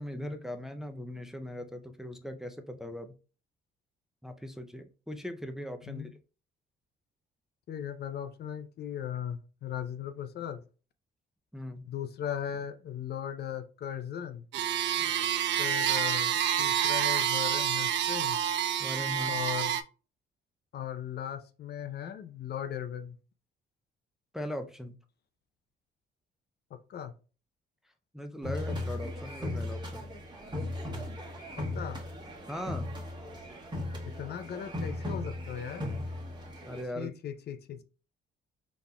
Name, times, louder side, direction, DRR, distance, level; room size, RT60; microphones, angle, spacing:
voice 1, 0.0-3.1 4.2-6.2 11.5-11.9 15.0-15.1 18.8-19.4 24.3-25.0 28.1-30.1 32.5-32.9 36.7-37.1, left 1 dB, ahead, 6 dB, 0.5 m, -39 dB
voice 2, 7.7-10.6 11.8-14.5 15.6-18.4 19.3-19.8 20.7-23.2 26.7-27.1 31.6-32.0 34.1-35.8 37.0-37.8, left 9 dB, 55° left, 11 dB, 0.5 m, -38 dB
sound 1, 14.5-19.8, right 10 dB, 65° right, 0.4 m, -28 dB
sound 2, 28.4-36.8, left 1 dB, 20° right, 1.2 m, -37 dB
4.1 x 3.4 x 2.2 m, 0.35 s
cardioid pair, 90°, 20 cm